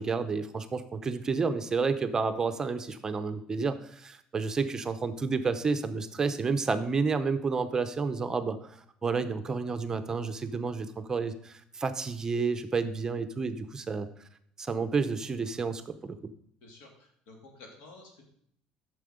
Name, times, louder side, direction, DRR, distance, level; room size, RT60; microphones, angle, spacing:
voice 1, 0.0-14.1 14.6-16.2, right 4 dB, 25° right, 10 dB, 0.7 m, -30 dB
voice 2, 16.6-18.3, left 2 dB, 85° left, 1 dB, 2.8 m, -52 dB
9.2 x 6.8 x 5.1 m, 0.68 s
cardioid pair, 120°, 3 cm